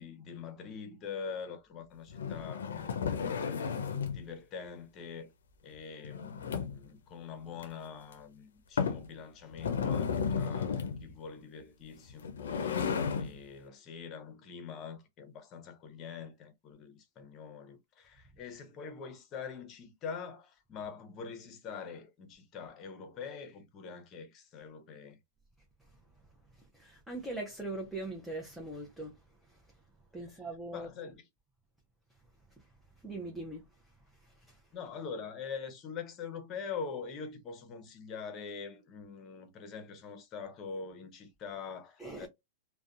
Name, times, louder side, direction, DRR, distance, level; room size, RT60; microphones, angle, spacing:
voice 1, 0.0-5.3 5.6-25.2 30.2-30.4 30.7-31.2 34.7-42.3, left 6 dB, 35° left, 0.8 m, -44 dB
sound 1, 2.1-4.2 6.0-6.9 7.6-7.7 8.1-8.2 8.8-9.1 9.5-11.0 12.1-13.3, left 6 dB, 85° left, 0.5 m, -33 dB
voice 2, 26.5-29.2 29.5-29.7 30.1-30.9 32.6-32.7 33.0-33.6 34.2-34.6 42.0-42.3, right 2 dB, ahead, 0.7 m, -41 dB
2.5 x 2.2 x 2.3 m
hypercardioid pair, 120°, 0 cm